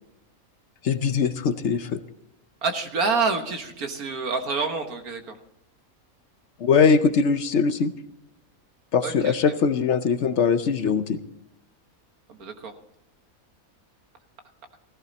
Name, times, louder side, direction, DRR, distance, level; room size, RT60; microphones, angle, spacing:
voice 1, 0.8-2.0 6.6-7.9 8.9-11.2, left 5 dB, 60° left, 11 dB, 0.9 m, -21 dB
voice 2, 2.6-5.4 9.0-9.3 12.3-12.7, right 4 dB, 80° right, 6 dB, 1.9 m, -27 dB
15.5 x 15.0 x 4.0 m, 0.83 s
omnidirectional pair, 1.5 m